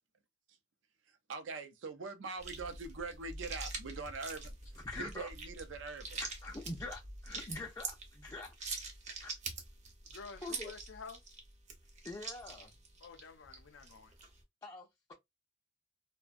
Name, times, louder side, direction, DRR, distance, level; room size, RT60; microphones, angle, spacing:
voice 1, 1.1-4.5 5.0-6.2, right 4 dB, 80° right, 0.5 m, -43 dB
sound 1, 2.4-14.4, right 3 dB, 40° right, 0.6 m, -45 dB
voice 2, 4.8-5.3 6.2-8.8 9.2-9.3 10.4-10.7 12.0-12.7 14.6-15.1, left 2 dB, 20° left, 0.4 m, -45 dB
voice 3, 10.1-11.2 13.0-14.1, left 5 dB, 85° left, 0.4 m, -50 dB
2.5 x 2.1 x 2.3 m
head